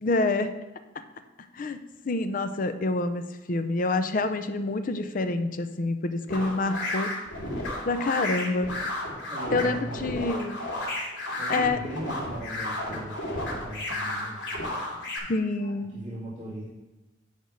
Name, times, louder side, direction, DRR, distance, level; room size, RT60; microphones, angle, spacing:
voice 1, 0.0-0.6 1.5-3.2 3.5-7.2 7.9-8.7 9.5-10.6 11.5-11.8 15.3-16.0, left 2 dB, 45° left, 10 dB, 0.5 m, -27 dB
sound 1, 6.3-15.2, left 1 dB, 85° left, 2.4 m, -33 dB
voice 2, 9.3-10.3 11.4-14.4 15.6-16.7, equal, 30° right, -11 dB, 2.4 m, -39 dB
10.5 x 3.5 x 6.5 m, 1.1 s
head